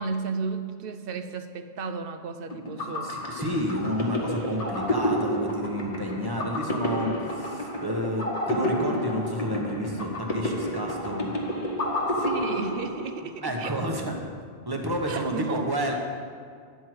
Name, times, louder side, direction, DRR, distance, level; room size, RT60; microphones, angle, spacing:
voice 1, 0.0-3.1 12.1-13.8 15.1-15.7, right 4 dB, 65° right, 9 dB, 0.8 m, -33 dB
sound 1, 2.5-13.3, equal, 35° left, 1.1 m, -30 dB
voice 2, 3.0-11.3 13.4-14.1 14.7-15.9, equal, 20° right, 1 dB, 1.1 m, -30 dB
10.0 x 4.6 x 7.7 m, 2.1 s
omnidirectional pair, 1.1 m